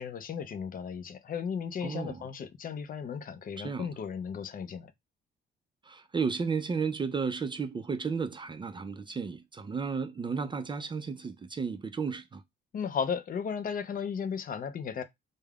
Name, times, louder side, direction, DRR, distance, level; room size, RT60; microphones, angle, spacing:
voice 1, 0.0-4.9 12.7-15.0, left 6 dB, 45° left, 0.4 m, -35 dB
voice 2, 1.8-2.3 3.6-3.9 5.8-12.4, right 5 dB, 25° right, 0.3 m, -33 dB
3.2 x 2.0 x 2.3 m
cardioid pair, 90°, 20 cm